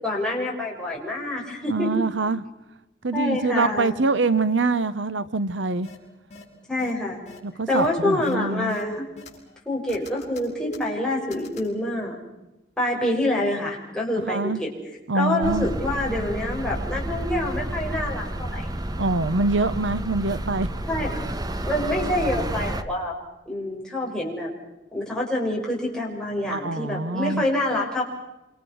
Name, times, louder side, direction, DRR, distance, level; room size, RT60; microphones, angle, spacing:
voice 1, 0.0-1.9 3.1-4.0 6.7-7.2 7.7-9.0 9.7-12.2 12.8-14.7 15.1-18.7 20.9-21.1 21.6-23.1 23.5-24.5 24.9-28.0, left 1 dB, 5° left, -3 dB, 7.0 m, -26 dB
voice 2, 1.7-2.4 3.0-5.9 7.4-8.8 14.3-14.6 15.1-15.7 19.0-20.7 26.5-27.4, right 3 dB, 75° right, 15 dB, 0.9 m, -24 dB
sound 1, 5.8-6.0 6.3-6.4 6.8-6.9 7.3-7.4 7.7-7.9 8.2-8.3 8.7-9.6 9.9-11.7, left 1 dB, 35° left, 5.8 m, -39 dB
sound 2, 15.4-22.8, right 1 dB, 20° right, 1.2 m, -30 dB
28.0 x 27.0 x 6.4 m, 0.97 s
head